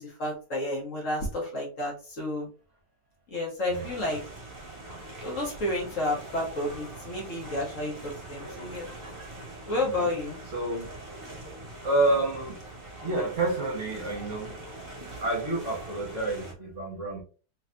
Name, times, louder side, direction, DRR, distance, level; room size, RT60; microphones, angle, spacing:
voice 1, 0.0-2.5 3.3-4.2 5.2-8.9 9.7-10.4, left 1 dB, 50° left, -2 dB, 1.2 m, -31 dB
sound 1, 3.7-16.5, right 2 dB, 35° right, 1.5 m, -43 dB
voice 2, 10.5-10.9 11.8-12.6 13.0-14.6 15.2-17.2, right 2 dB, 50° right, -2 dB, 1.2 m, -28 dB
3.4 x 3.1 x 2.5 m, 0.35 s
omnidirectional pair, 1.9 m